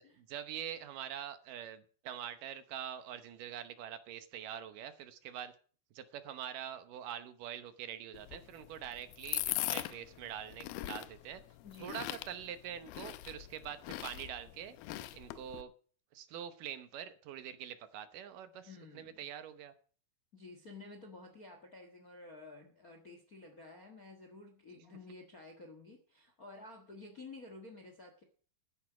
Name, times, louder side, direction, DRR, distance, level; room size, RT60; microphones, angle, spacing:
voice 1, 0.0-5.5 5.9-11.4 11.8-14.8 15.1-15.7 16.1-18.7 18.9-19.7, right 10 dB, 70° right, 11 dB, 2.5 m, -44 dB
sound 1, 8.1-15.6, left 15 dB, 90° left, 2.6 m, -41 dB
voice 2, 11.6-12.0 18.6-19.3 20.3-28.2, left 3 dB, 45° left, 4 dB, 1.1 m, -52 dB
13.0 x 10.0 x 5.0 m, 0.43 s
omnidirectional pair, 4.1 m